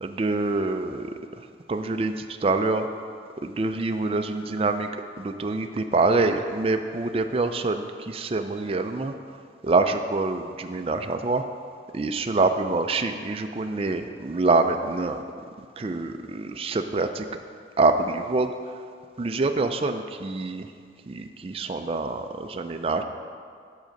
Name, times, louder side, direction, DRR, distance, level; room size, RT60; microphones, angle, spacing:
voice 1, 0.0-1.1 1.7-2.9 3.4-4.9 5.2-9.1 9.6-11.4 11.9-15.2 15.8-17.2 17.8-18.5 19.2-20.7 21.1-23.0, right 3 dB, 30° right, 7 dB, 0.4 m, -25 dB
7.6 x 6.5 x 5.2 m, 2.2 s
head